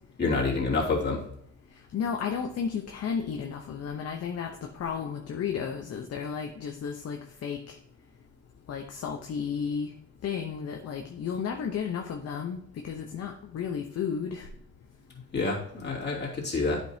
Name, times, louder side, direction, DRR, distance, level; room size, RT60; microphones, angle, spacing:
voice 1, 0.2-1.2 15.3-16.8, left 3 dB, 35° left, -5 dB, 2.7 m, -27 dB
voice 2, 1.7-7.8 8.7-9.9 10.2-14.5, left 7 dB, 55° left, 3 dB, 0.8 m, -33 dB
9.0 x 5.4 x 2.7 m, 0.74 s
cardioid pair, 90°, 30 cm